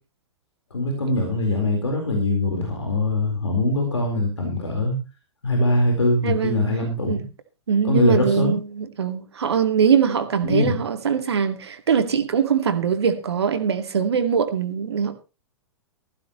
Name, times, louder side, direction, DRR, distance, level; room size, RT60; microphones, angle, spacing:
voice 1, 0.7-5.0 5.4-7.2 7.8-8.6 10.4-10.8, left 2 dB, 70° left, 4.2 m, -22 dB
voice 2, 6.2-6.6 7.1-7.3 7.7-15.1, right 7 dB, 60° right, 2.1 m, -22 dB
15.5 x 15.5 x 3.1 m
figure-of-eight pair, 110°, 15 cm